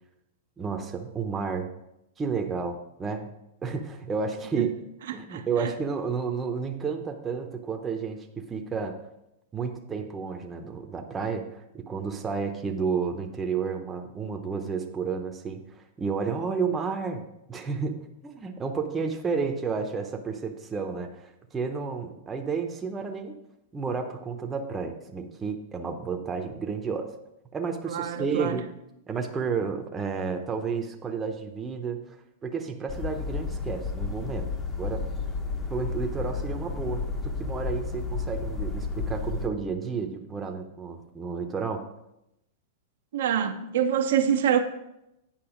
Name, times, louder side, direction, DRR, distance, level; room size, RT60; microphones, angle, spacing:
voice 1, 0.6-1.7 2.2-3.3 3.6-4.7 5.1-9.0 9.5-15.6 16.0-17.2 17.5-23.3 23.7-27.1 27.5-28.7 29.1-32.0 32.4-34.5 34.8-35.1 35.7-41.8, right 5 dB, 15° right, 0.8 m, -31 dB
voice 2, 5.1-5.7 27.9-28.6 43.1-44.6, right 8 dB, 75° right, 0.8 m, -26 dB
sound 1, 32.9-39.5, left 4 dB, 20° left, 0.9 m, -32 dB
8.9 x 5.4 x 5.0 m
hypercardioid pair, 140°, 0 cm